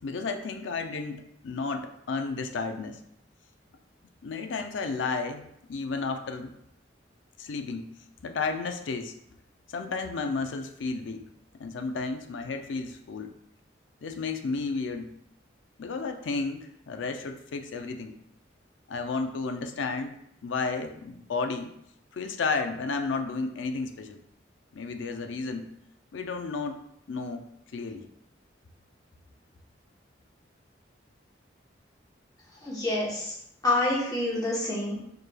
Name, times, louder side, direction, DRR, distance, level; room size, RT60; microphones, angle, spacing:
voice 1, 0.0-3.0 4.2-5.4 5.7-6.5 7.4-7.8 8.2-9.1 9.7-11.2 11.6-13.3 14.0-15.1 15.8-18.1 18.9-20.1 20.4-21.7 22.1-24.2 24.7-25.6 26.1-26.8 27.1-27.4 27.7-28.0, left 4 dB, 80° left, 7 dB, 0.4 m, -32 dB
voice 2, 32.6-33.4 33.6-35.0, left 2 dB, 20° left, -5 dB, 1.0 m, -27 dB
4.7 x 3.1 x 2.2 m, 0.75 s
head